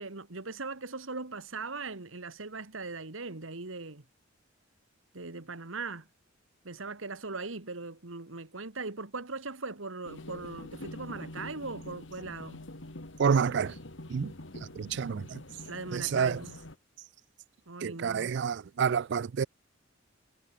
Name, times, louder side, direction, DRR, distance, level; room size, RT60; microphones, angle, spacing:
voice 1, 0.0-4.0 5.1-6.1 6.6-12.6 15.7-16.5 17.7-18.3, right 3 dB, 80° right, 1.9 m, -40 dB
sound 1, 10.0-16.8, left 1 dB, 65° left, 2.2 m, -45 dB
voice 2, 13.2-13.8 14.1-14.3 14.8-15.4 15.9-16.4 17.8-19.4, right 6 dB, 60° right, 0.4 m, -28 dB
head